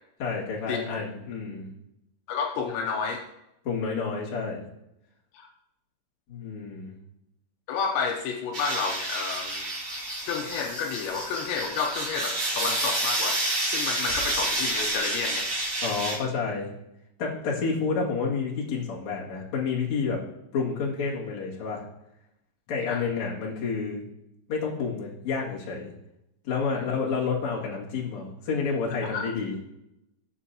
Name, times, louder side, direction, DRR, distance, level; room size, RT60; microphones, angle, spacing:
voice 1, 0.2-1.7 3.6-4.7 6.3-7.0 15.8-16.7 17.2-20.2 20.5-21.8 22.7-24.0 24.5-25.9 26.4-29.6, left 5 dB, 45° left, -5 dB, 3.0 m, -29 dB
voice 2, 2.3-3.2 5.3-5.5 7.7-9.7 10.2-13.4 13.7-15.6 22.9-23.1 26.8-26.9 29.1-29.3, left 5 dB, 80° left, 3 dB, 3.0 m, -30 dB
sound 1, 8.5-16.2, right 1 dB, 30° right, 2.4 m, -29 dB
15.0 x 7.1 x 2.9 m, 0.85 s
omnidirectional pair, 5.2 m